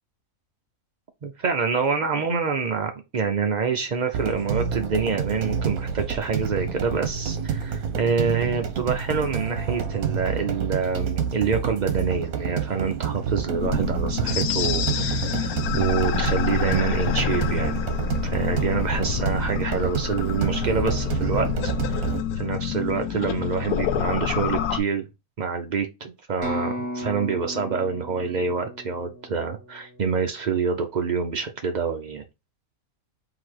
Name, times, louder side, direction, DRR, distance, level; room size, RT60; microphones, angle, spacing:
voice 1, 1.2-17.8 18.2-21.5 21.8-22.0 22.4-25.1 25.4-32.2, right 5 dB, 65° right, 0.4 m, -26 dB
sound 1, 4.1-22.2, right 7 dB, 80° right, 1.3 m, -28 dB
sound 2, 13.6-24.8, left 8 dB, 85° left, 1.1 m, -27 dB
sound 3, 26.4-30.2, equal, 45° right, 2.0 m, -35 dB
3.8 x 2.8 x 4.6 m
omnidirectional pair, 1.5 m